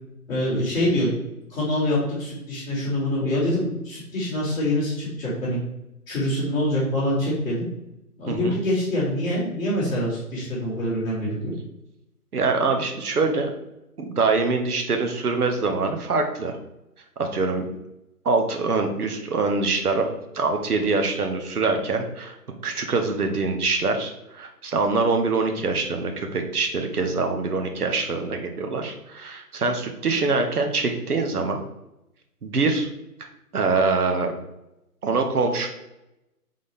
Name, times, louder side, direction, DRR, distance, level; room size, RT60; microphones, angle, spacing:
voice 1, 0.3-1.1 1.5-5.6 6.1-7.6 8.2-11.5, left 1 dB, 10° left, -11 dB, 1.3 m, -25 dB
voice 2, 8.3-8.6 12.3-13.5 14.0-16.6 17.2-17.6 18.2-20.1 20.3-22.3 22.6-31.6 32.4-32.9 33.5-34.3 35.0-35.7, right 3 dB, 70° right, 4 dB, 1.0 m, -24 dB
4.0 x 3.7 x 3.3 m, 0.91 s
figure-of-eight pair, 155°, 47 cm